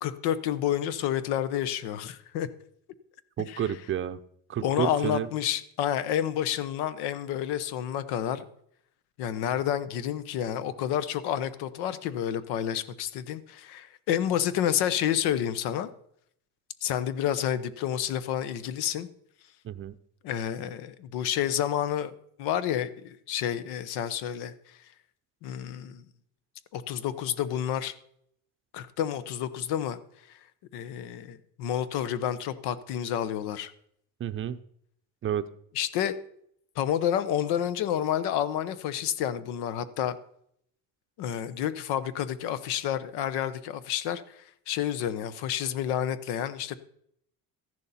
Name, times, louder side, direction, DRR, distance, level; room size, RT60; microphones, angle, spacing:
voice 1, 0.0-2.5 3.5-3.7 4.6-8.4 9.2-15.9 16.8-19.1 20.2-22.1 22.4-24.5 25.4-26.0 26.7-27.9 28.7-30.0 30.7-33.7 35.7-36.2 36.8-40.1 41.2-44.4 44.7-46.8, left 10 dB, 85° left, 14 dB, 1.0 m, -29 dB
voice 2, 3.4-4.2 4.5-5.3 19.6-19.9 34.2-34.6 35.2-35.4, right 9 dB, 35° right, 12 dB, 0.6 m, -30 dB
14.0 x 11.0 x 4.2 m, 0.69 s
cardioid pair, 135°, 38 cm